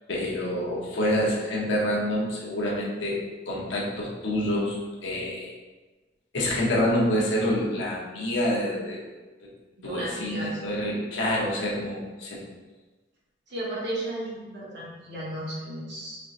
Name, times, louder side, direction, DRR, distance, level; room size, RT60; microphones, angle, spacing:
voice 1, 0.1-5.5 6.3-9.0 9.4-9.5 9.8-12.4, left 1 dB, 75° left, -4 dB, 0.8 m, -27 dB
voice 2, 9.8-10.6 13.5-16.2, right 1 dB, 65° right, -7 dB, 1.2 m, -34 dB
4.4 x 2.5 x 2.5 m, 1.3 s
head